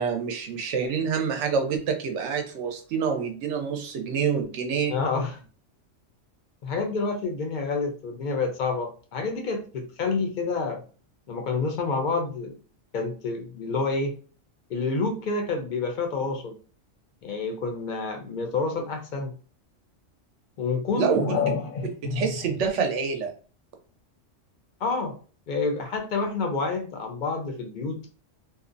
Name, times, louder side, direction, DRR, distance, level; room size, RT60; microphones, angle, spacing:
voice 1, 0.0-5.0 20.9-21.4 22.0-23.3, right 6 dB, 75° right, 5 dB, 0.9 m, -27 dB
voice 2, 4.9-5.4 6.6-10.8 11.3-12.6 12.9-14.2 14.7-16.6 17.2-19.3 20.6-22.3 24.8-25.1 25.5-28.0, left 4 dB, 55° left, 4 dB, 0.5 m, -28 dB
2.6 x 2.1 x 2.5 m, 0.39 s
omnidirectional pair, 1.3 m